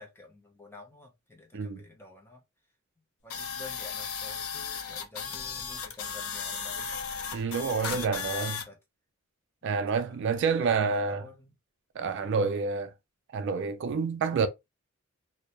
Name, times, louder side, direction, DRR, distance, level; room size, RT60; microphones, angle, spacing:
voice 1, 0.0-2.4 3.2-7.0 7.6-8.8 9.6-11.5 12.1-12.6, left 3 dB, 10° left, 0.5 m, -50 dB
sound 1, 3.3-8.6, left 6 dB, 80° left, 0.5 m, -35 dB
voice 2, 7.3-8.5 9.6-11.2 12.0-12.9 13.3-14.5, right 5 dB, 60° right, 0.3 m, -28 dB
2.2 x 2.0 x 2.8 m
head